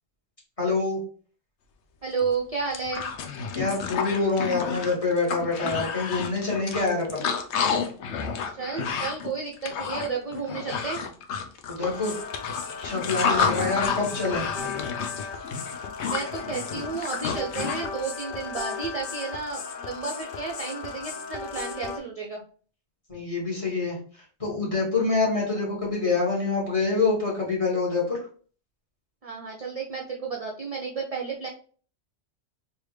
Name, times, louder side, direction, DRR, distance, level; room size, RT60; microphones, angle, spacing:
voice 1, 0.6-1.0 3.5-7.2 11.7-12.2 12.8-14.5 23.1-24.0 24.4-28.2, left 3 dB, 30° left, -5 dB, 1.6 m, -26 dB
voice 2, 2.0-3.1 8.5-11.0 13.2-13.6 16.0-22.4 29.2-31.5, right 5 dB, 45° right, -1 dB, 0.5 m, -32 dB
sound 1, 2.2-2.3 2.6-17.9, left 6 dB, 90° left, 0.9 m, -30 dB
sound 2, 11.9-22.0, left 5 dB, 60° left, 0.6 m, -36 dB
3.2 x 2.7 x 3.1 m, 0.43 s
omnidirectional pair, 1.1 m